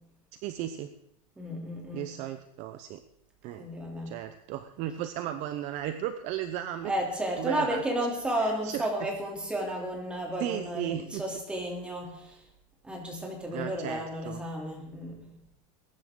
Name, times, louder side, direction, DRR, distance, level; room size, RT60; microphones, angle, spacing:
voice 1, 0.4-0.9 1.9-3.0 3.4-3.7 4.1-6.9 7.4-7.8 8.4-9.1 10.4-11.2 13.5-14.4, right 11 dB, 40° right, 10 dB, 0.8 m, -35 dB
voice 2, 1.4-2.1 3.6-4.1 6.8-12.3 12.8-15.2, right 1 dB, 5° right, -1 dB, 3.1 m, -33 dB
21.5 x 11.0 x 3.8 m, 0.73 s
supercardioid pair, 165°, 19 cm